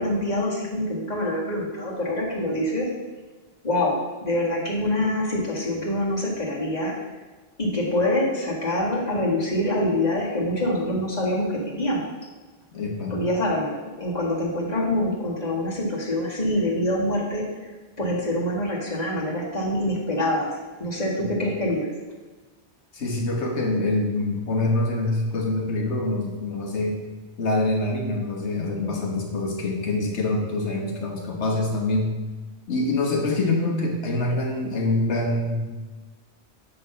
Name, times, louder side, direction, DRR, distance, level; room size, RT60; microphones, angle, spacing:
voice 1, 0.0-2.9 3.6-4.0 4.2-6.9 7.6-12.1 13.1-17.4 18.0-21.9, left 1 dB, 40° left, -4 dB, 1.9 m, -25 dB
voice 2, 12.7-13.2 21.2-21.4 22.9-27.0 27.4-32.2 32.7-35.7, left 2 dB, 85° left, 0 dB, 1.6 m, -25 dB
8.6 x 3.9 x 5.5 m, 1.3 s
omnidirectional pair, 1.1 m